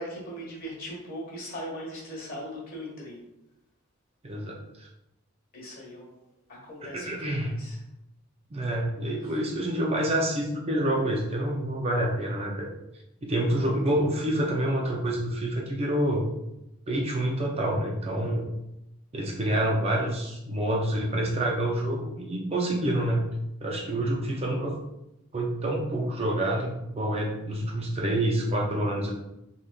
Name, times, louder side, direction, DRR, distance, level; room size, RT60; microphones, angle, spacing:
voice 1, 0.0-3.2 5.5-6.2 6.5-7.8 9.2-9.3 19.4-19.6, equal, 45° left, -4 dB, 1.2 m, -39 dB
voice 2, 4.2-4.9 6.8-7.5 8.5-12.7 13.2-16.3 16.9-18.4 19.1-23.2 23.6-24.7 25.3-29.1, right 1 dB, 30° right, -1 dB, 0.4 m, -27 dB
3.7 x 3.3 x 2.2 m, 0.90 s
head